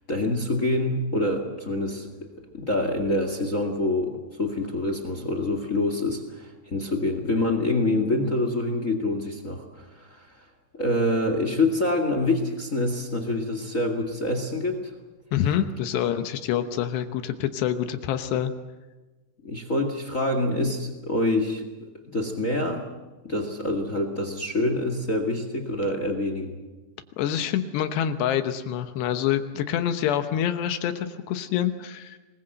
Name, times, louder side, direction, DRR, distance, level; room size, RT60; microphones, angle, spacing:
voice 1, 0.1-2.3 2.5-10.3 10.7-14.9 19.4-22.8 23.2-26.6, left 2 dB, 35° left, 7 dB, 1.3 m, -26 dB
voice 2, 15.3-18.5 27.2-32.2, left 10 dB, 80° left, 9 dB, 3.2 m, -26 dB
25.5 x 21.0 x 7.8 m, 1.2 s
omnidirectional pair, 4.9 m